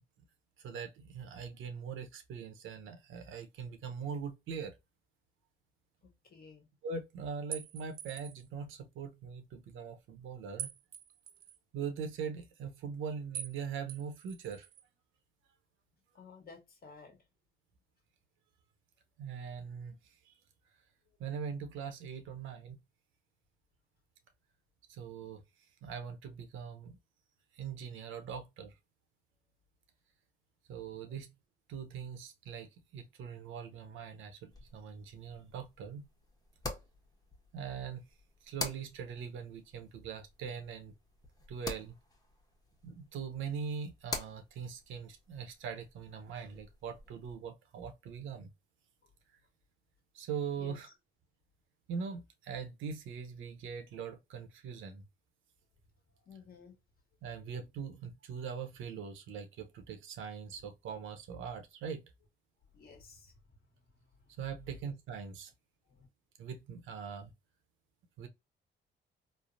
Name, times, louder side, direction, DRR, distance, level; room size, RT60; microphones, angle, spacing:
voice 1, 0.6-4.7 6.8-10.7 11.7-14.7 19.2-20.0 20.3-20.4 21.2-22.8 24.9-25.4 25.8-27.0 27.5-28.7 30.7-31.3 31.7-36.0 37.5-38.0 38.4-40.9 41.5-41.9 42.8-48.5 50.1-50.9 51.9-55.0 57.2-62.0 64.4-65.5 66.4-67.3 68.2-68.3, right 6 dB, 80° right, 0.8 m, -41 dB
voice 2, 6.0-6.7 16.1-17.2 50.6-50.8 56.3-56.7 62.7-63.3 65.9-66.1, left 5 dB, 50° left, 1.2 m, -54 dB
sound 1, 7.5-8.5 10.6-11.6 13.3-13.6 13.9-14.8, right 9 dB, 45° right, 0.4 m, -44 dB
sound 2, 34.5-47.3, left 2 dB, 20° left, 0.9 m, -47 dB
3.2 x 2.0 x 2.5 m
cardioid pair, 90°, 20 cm